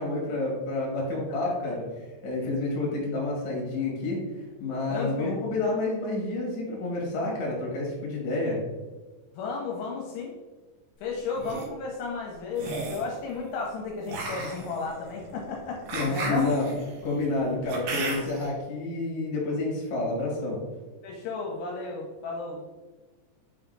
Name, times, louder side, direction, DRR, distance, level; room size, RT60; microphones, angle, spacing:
voice 1, 0.0-8.6 15.9-16.7 17.0-20.6, left 2 dB, 50° left, -3 dB, 2.6 m, -29 dB
voice 2, 4.9-5.4 9.4-10.3 11.0-15.8 16.1-16.5 21.0-22.7, left 4 dB, 80° left, -1 dB, 3.0 m, -33 dB
sound 1, 11.2-11.7 12.5-13.1 14.1-18.5, right 3 dB, 80° right, 2.0 m, -35 dB
8.4 x 3.5 x 3.8 m, 1.2 s
omnidirectional pair, 5.6 m